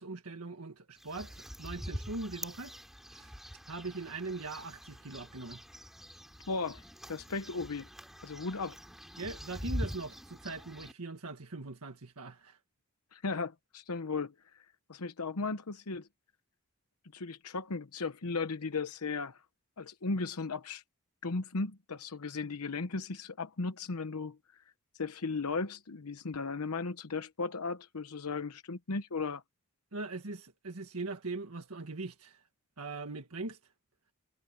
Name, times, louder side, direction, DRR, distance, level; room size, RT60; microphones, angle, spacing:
voice 1, 0.0-2.7 3.1-3.4 3.6-5.6 9.2-12.6 29.9-32.4 32.8-33.6, right 3 dB, 75° right, 1.6 m, -41 dB
sound 1, 1.0-10.9, equal, ahead, 4.3 m, -44 dB
voice 2, 6.5-6.8 7.1-7.9 8.2-8.8 13.1-14.6 14.9-16.1 17.1-19.4 19.8-20.8 21.2-24.4 25.0-29.4, left 4 dB, 85° left, 0.9 m, -36 dB
head